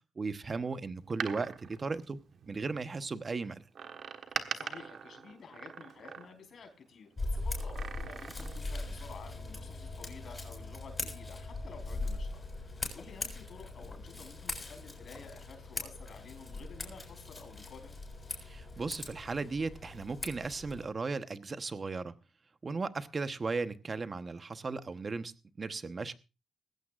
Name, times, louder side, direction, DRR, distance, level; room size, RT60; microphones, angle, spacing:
voice 1, 0.2-2.2 2.5-3.6 18.5-22.1 22.6-26.1, right 4 dB, 35° right, 1.0 m, -36 dB
Door, 1.0-2.8 3.7-6.6 7.5-8.7 9.0-9.1, right 7 dB, 60° right, 1.4 m, -42 dB
voice 2, 4.5-18.0, left 5 dB, 55° left, 4.3 m, -52 dB
Scissors, 7.2-20.9, left 2 dB, 25° left, 6.9 m, -40 dB
19.5 x 16.0 x 2.5 m
cardioid pair, 95°, 0 cm